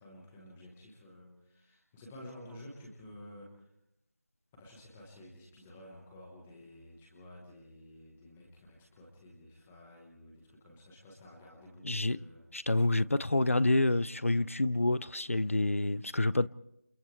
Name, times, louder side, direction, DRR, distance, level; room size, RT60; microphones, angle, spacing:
voice 1, 0.0-3.5 4.6-12.4, left 1 dB, 5° left, 1.2 m, -52 dB
voice 2, 11.8-12.2 12.5-16.5, left 2 dB, 60° left, 0.7 m, -28 dB
29.5 x 28.5 x 3.3 m
figure-of-eight pair, 175°, 8 cm